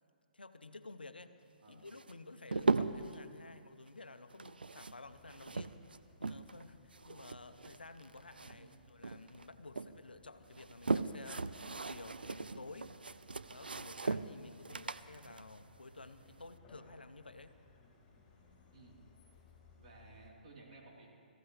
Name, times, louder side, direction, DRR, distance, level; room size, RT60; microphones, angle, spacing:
voice 1, 0.3-1.4 1.7-5.8 6.2-12.9 13.5-17.5, left 3 dB, 85° left, 10 dB, 0.8 m, -53 dB
sound 1, 1.9-3.2 4.3-6.6 6.9-8.8 9.0-9.9 10.4-16.5, right 3 dB, 85° right, 0.5 m, -38 dB
sound 2, 5.0-20.3, left 4 dB, 25° left, 4.0 m, -65 dB
voice 2, 8.5-8.8 14.7-14.8 18.7-19.0 19.7-21.1, right 3 dB, 50° right, -4 dB, 3.8 m, -57 dB
22.0 x 14.5 x 3.4 m, 2.2 s
figure-of-eight pair, 130°, 5 cm